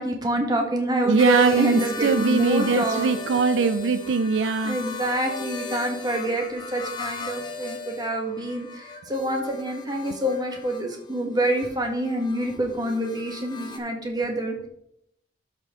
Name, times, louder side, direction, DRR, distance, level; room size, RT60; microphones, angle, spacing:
voice 1, 0.0-3.1 4.6-14.7, right 1 dB, 20° right, 1.5 m, -26 dB
voice 2, 1.0-4.8, right 5 dB, 70° right, 0.4 m, -22 dB
sound 1, 1.2-13.8, left 5 dB, 25° left, 0.9 m, -37 dB
13.0 x 4.4 x 3.6 m
head